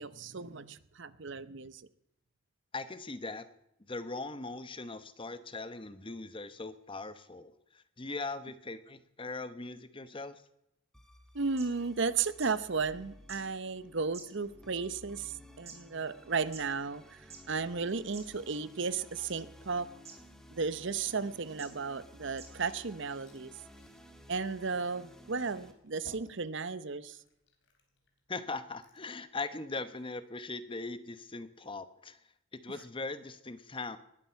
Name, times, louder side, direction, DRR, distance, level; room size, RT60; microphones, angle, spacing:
voice 1, 0.0-1.8 11.3-19.9 20.5-23.5 24.3-27.2, right 4 dB, 60° right, 15 dB, 0.8 m, -34 dB
voice 2, 2.7-3.4 3.9-10.3 28.3-32.2 32.6-34.0, left 3 dB, 25° left, 12 dB, 0.9 m, -40 dB
sound 1, 10.9-25.7, left 1 dB, 5° left, 1.8 m, -55 dB
sound 2, 11.3-11.4 11.6-11.7 12.4-12.5 13.3-13.4 14.1-14.6 15.3-15.8 16.5-16.6 17.2-17.4 18.1-18.2 19.2-19.5 20.0-20.2 20.9-21.0 21.6-21.7 22.4-22.5 23.3-23.4, right 6 dB, 30° right, 3.8 m, -48 dB
Glass / Fill (with liquid), 22.1-29.2, left 1 dB, 60° left, 3.9 m, -62 dB
19.5 x 12.0 x 5.8 m, 0.81 s
head